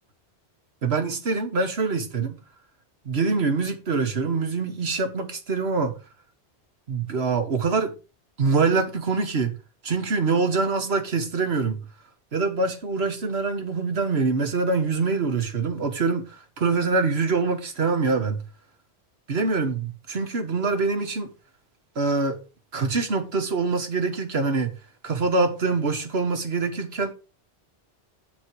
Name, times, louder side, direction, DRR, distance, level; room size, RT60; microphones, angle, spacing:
voice 1, 0.8-2.4 3.0-6.0 6.9-7.9 8.4-9.5 9.8-11.8 12.3-18.4 19.3-21.3 21.9-22.4 22.7-24.7 25.0-27.1, right 4 dB, 65° right, 1.6 m, -24 dB
7.7 x 7.2 x 4.7 m
omnidirectional pair, 1.1 m